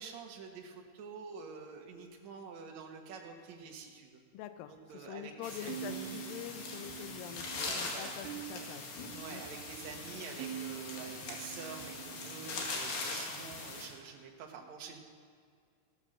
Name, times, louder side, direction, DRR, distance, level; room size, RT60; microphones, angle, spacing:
voice 1, 0.0-4.2 4.7-6.2 7.5-8.3 9.1-15.0, right 5 dB, 60° right, 2 dB, 2.0 m, -47 dB
voice 2, 4.3-8.9 9.3-9.4 12.4-12.7, left 11 dB, 85° left, 10 dB, 2.0 m, -46 dB
sound 1, 5.4-13.9, left 3 dB, 60° left, 3.7 m, -41 dB
sound 2, 5.7-12.8, right 12 dB, 80° right, 2.1 m, -46 dB
16.5 x 13.0 x 6.6 m, 2.1 s
omnidirectional pair, 5.1 m